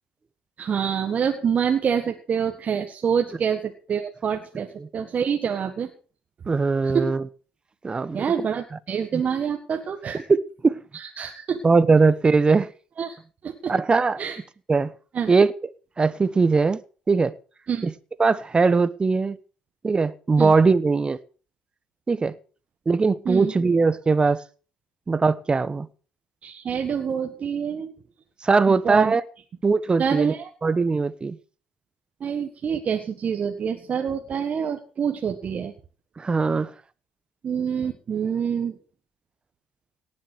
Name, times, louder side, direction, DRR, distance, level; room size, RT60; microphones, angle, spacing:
voice 1, 0.6-5.9 6.8-7.1 8.1-10.2 10.9-11.6 13.0-13.2 13.4-13.7 14.2-14.4 15.1-15.3 17.7-17.9 20.4-20.5 23.3-23.5 26.4-27.9 28.7-29.2 30.0-30.5 32.2-35.7 37.4-38.8, right 7 dB, 45° right, 1.7 m, -26 dB
voice 2, 6.5-7.2 7.8-8.2 9.1-9.2 10.3-10.4 10.6-10.8 11.6-12.7 13.7-14.2 14.7-14.9 15.3-15.5 16.0-16.8 17.1-17.3 17.8-17.9 18.2-19.4 19.8-21.2 22.1-22.3 22.9-24.4 25.1-25.9 28.4-29.2 29.6-30.3 30.6-31.4 36.2-36.7, right 4 dB, 30° right, 1.2 m, -20 dB
18.0 x 7.6 x 6.3 m
hypercardioid pair, 65°, 3 cm